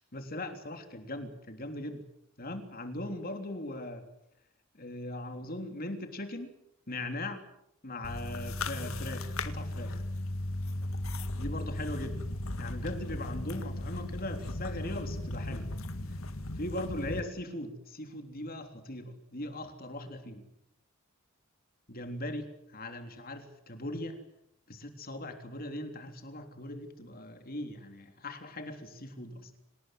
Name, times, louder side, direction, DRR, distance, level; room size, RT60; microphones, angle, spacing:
voice 1, 0.1-2.0 2.4-4.0 4.7-6.5 6.9-7.4 7.8-10.0 11.4-12.3 12.6-15.7 16.6-20.4 21.9-24.2 24.7-29.5, left 1 dB, 40° left, 6 dB, 3.5 m, -39 dB
sound 1, 8.0-17.2, left 1 dB, 70° left, 2.0 m, -36 dB
27.0 x 19.5 x 7.9 m, 0.76 s
head